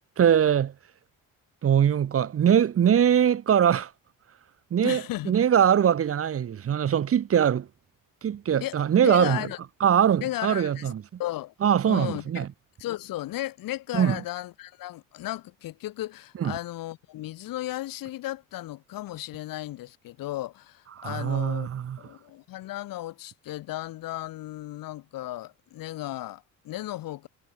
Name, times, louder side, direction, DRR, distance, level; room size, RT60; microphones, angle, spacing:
voice 1, 0.2-0.7 1.6-3.9 4.7-7.7 8.2-9.5 9.8-11.0 11.6-12.5 13.9-14.2 16.4-16.5 21.0-22.0, right 9 dB, 40° right, 1.9 m, -22 dB
voice 2, 4.8-5.4 8.6-9.6 10.2-10.9 11.2-11.5 11.9-12.4 12.8-21.7 22.0-27.3, left 15 dB, 80° left, 3.7 m, -35 dB
cardioid pair, 140°, 33 cm